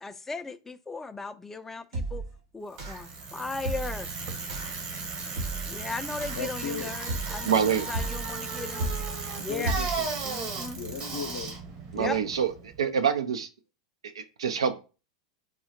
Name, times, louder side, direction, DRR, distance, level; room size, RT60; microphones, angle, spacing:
voice 1, 0.0-2.2 2.5-4.1 5.7-7.6 7.9-8.9 9.4-9.8 10.2-10.8 12.0-12.2, left 3 dB, 10° left, 0.3 m, -37 dB
sound 1, 1.9-2.4 2.8-3.2 3.6-4.1 4.5-4.8 5.4-5.8 6.2-6.6 7.1-7.5 7.9-8.3 8.8-9.2 9.6-10.1, right 2 dB, 65° right, 1.1 m, -33 dB
Bicycle, 2.8-12.8, right 4 dB, 45° right, 0.9 m, -36 dB
voice 2, 6.3-6.9 8.8-9.0 9.5-10.1 10.7-11.6 11.8-12.1, left 6 dB, 80° left, 0.6 m, -37 dB
voice 3, 7.5-7.9 11.9-13.5 14.2-14.8, right 7 dB, 90° right, 0.4 m, -26 dB
3.5 x 2.1 x 2.8 m
hypercardioid pair, 105°, 3 cm